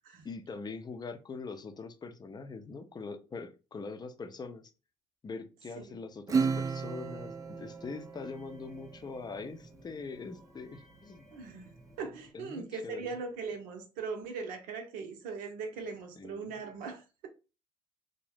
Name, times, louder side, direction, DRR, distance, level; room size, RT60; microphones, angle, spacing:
voice 1, 0.2-4.7 5.2-11.2 12.3-13.2 16.2-16.6, left 4 dB, 30° left, 0.5 m, -43 dB
Acoustic guitar / Strum, 6.3-9.2, right 5 dB, 25° right, 0.3 m, -33 dB
sound 1, 6.9-12.3, right 1 dB, 5° right, 0.9 m, -58 dB
voice 2, 11.3-11.7 12.0-17.3, right 4 dB, 70° right, 0.7 m, -40 dB
2.6 x 2.1 x 3.3 m
hypercardioid pair, 50°, 15 cm